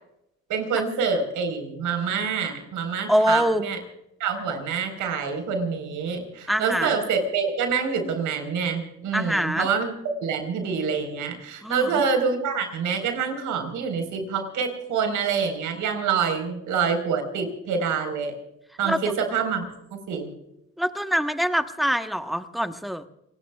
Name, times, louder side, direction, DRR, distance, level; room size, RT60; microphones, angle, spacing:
voice 1, 0.5-3.8 4.2-9.9 10.2-18.3 18.8-19.6 20.1-20.3, right 6 dB, 85° right, 6 dB, 4.5 m, -26 dB
voice 2, 3.1-3.6 6.5-6.9 9.1-9.7 11.6-12.0 18.8-19.0 20.8-23.1, equal, ahead, 7 dB, 1.2 m, -24 dB
29.0 x 18.5 x 2.4 m, 0.86 s
cardioid pair, 90°, 30 cm